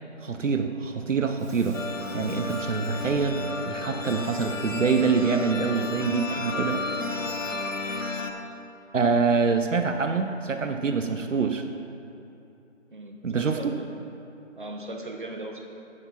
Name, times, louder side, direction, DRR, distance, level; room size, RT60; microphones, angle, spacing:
voice 1, 0.2-1.8 2.1-3.4 3.7-6.8 8.9-11.6 13.2-13.8, right 5 dB, 75° right, 6 dB, 0.6 m, -25 dB
Crackle, 1.4-6.5 9.2-9.3, equal, 5° right, 1.3 m, -56 dB
sound 1, 1.7-8.3, left 2 dB, 85° left, 1.0 m, -32 dB
voice 2, 3.5-4.3 5.6-5.8 6.3-7.3 12.9-13.9 14.6-15.6, right 2 dB, 40° right, 2 dB, 0.8 m, -40 dB
Bell / Squeak, 4.0-6.5, left 3 dB, 25° left, 1.4 m, -51 dB
9.6 x 4.7 x 5.7 m, 2.9 s
figure-of-eight pair, 170°, 38 cm